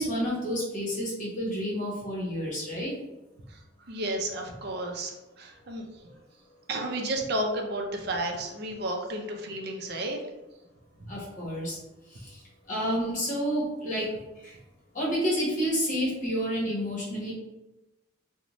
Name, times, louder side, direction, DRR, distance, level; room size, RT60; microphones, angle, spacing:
voice 1, 0.0-2.9 11.1-11.8 12.1-12.4 12.7-14.1 14.4-14.5 14.9-17.3, equal, 40° left, -5 dB, 1.0 m, -29 dB
voice 2, 3.9-6.2 6.7-10.2 11.0-11.1, right 1 dB, 55° right, 1 dB, 0.5 m, -32 dB
2.6 x 2.1 x 3.0 m, 1.0 s
head